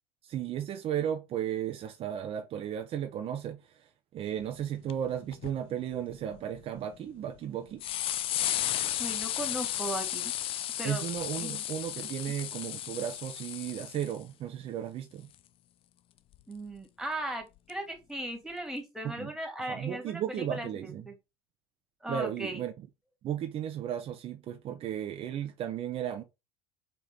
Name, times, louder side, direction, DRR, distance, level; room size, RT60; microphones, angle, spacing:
voice 1, 0.2-7.8 10.8-15.3 19.0-19.3 19.7-21.0 22.1-22.7 23.2-26.2, right 10 dB, 45° right, 1.0 m, -35 dB
sound 1, 4.6-4.7 4.9-5.0 5.3-5.5 6.1-6.8 7.4-7.5 7.8-14.2 16.3-16.4 17.7-17.8, left 12 dB, 40° left, 0.5 m, -34 dB
voice 2, 9.0-10.3 10.8-11.0 11.4-11.6 12.2-12.3 16.5-21.1 22.0-22.6, right 1 dB, ahead, 2.8 m, -37 dB
5.3 x 4.6 x 3.9 m
supercardioid pair, 100°, 14 cm